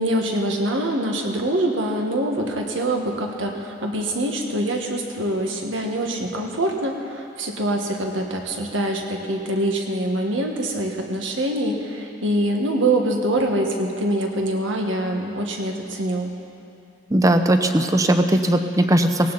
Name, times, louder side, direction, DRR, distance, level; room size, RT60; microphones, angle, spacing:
voice 1, 0.0-16.3, right 1 dB, 85° right, 2 dB, 1.7 m, -24 dB
voice 2, 17.1-19.3, right 1 dB, 15° right, 7 dB, 0.7 m, -18 dB
18.0 x 17.0 x 4.2 m, 2.6 s
head